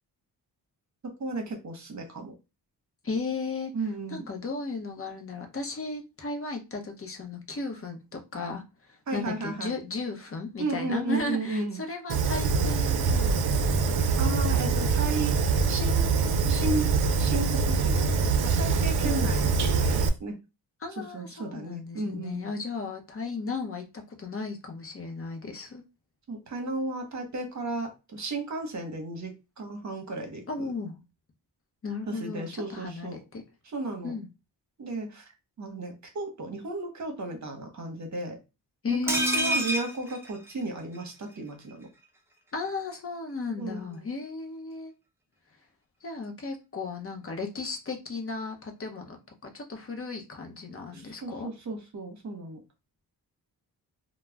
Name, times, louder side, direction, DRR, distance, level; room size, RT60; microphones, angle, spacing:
voice 1, 1.0-2.3 3.7-4.2 9.1-9.7 10.6-11.8 14.1-15.4 15.7-20.4 21.0-22.5 26.3-30.7 32.1-33.2 33.7-34.1 34.8-35.3 35.6-38.4 38.9-41.9 43.6-44.1 50.9-52.6, right 2 dB, 45° right, 5 dB, 0.9 m, -34 dB
voice 2, 3.0-3.7 4.1-14.0 19.0-19.1 20.8-25.8 30.5-31.0 31.8-33.4 34.0-34.3 38.8-39.7 42.5-44.9 46.0-49.2 49.5-51.5, left 3 dB, 35° left, 3 dB, 0.7 m, -35 dB
Fire, 12.1-20.1, right 4 dB, 70° right, 0.5 m, -24 dB
sound 1, 39.1-41.0 41.3-41.4 41.7-41.8, equal, 5° right, 0.6 m, -29 dB
2.3 x 2.1 x 3.3 m, 0.27 s
cardioid pair, 90°, 40 cm